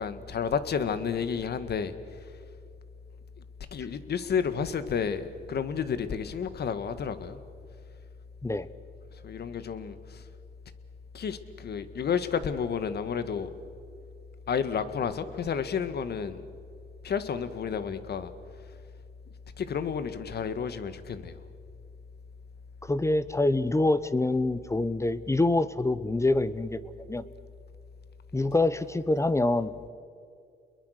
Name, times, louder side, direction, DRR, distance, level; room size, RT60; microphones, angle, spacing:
voice 1, 0.0-1.9 3.7-7.4 9.2-10.2 11.1-13.5 14.5-16.4 17.0-18.3 19.6-21.3, left 6 dB, 55° left, 11 dB, 1.7 m, -31 dB
voice 2, 22.8-26.8 27.1-27.2 28.3-29.9, left 2 dB, 15° left, 15 dB, 0.9 m, -26 dB
29.5 x 22.0 x 6.6 m, 2.3 s
cardioid pair, 90°, 20 cm